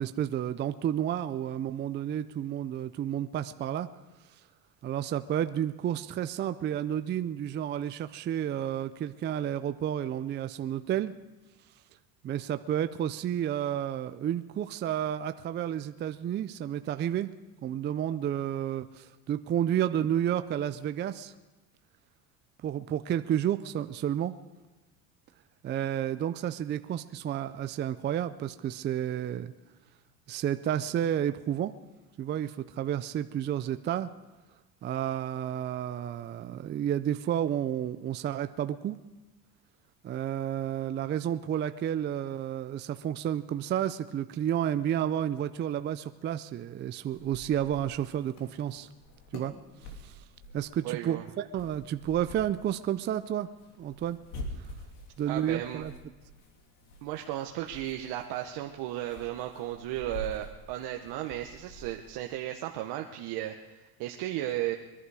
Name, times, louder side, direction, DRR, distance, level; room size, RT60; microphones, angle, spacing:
voice 1, 0.0-3.9 4.8-11.1 12.2-17.3 17.6-21.3 22.6-24.3 25.6-29.5 30.3-31.7 32.2-34.1 34.8-39.0 40.0-48.9 49.3-49.5 50.0-50.1 50.5-53.5 53.8-54.2 55.2-55.9, right 10 dB, 25° right, 11 dB, 0.4 m, -31 dB
sound 1, 47.1-62.3, left 1 dB, 65° left, 2.9 m, -47 dB
voice 2, 50.8-51.2 55.3-55.8 57.0-64.8, right 13 dB, 65° right, 3 dB, 1.0 m, -35 dB
22.5 x 11.0 x 4.8 m, 1.2 s
cardioid pair, 120°, 43 cm